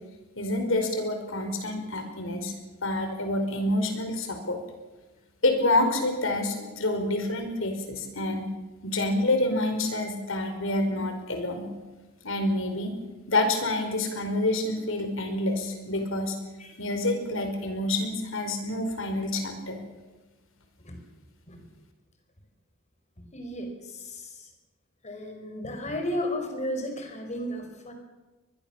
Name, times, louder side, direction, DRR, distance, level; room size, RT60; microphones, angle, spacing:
voice 1, 0.3-4.6 5.4-8.5 8.8-11.7 12.2-12.9 13.3-16.3 16.8-19.8, left 2 dB, 65° left, 6 dB, 4.8 m, -27 dB
voice 2, 23.3-24.4 25.0-27.9, left 1 dB, 35° left, 5 dB, 5.1 m, -34 dB
24.0 x 20.5 x 7.2 m, 1.2 s
head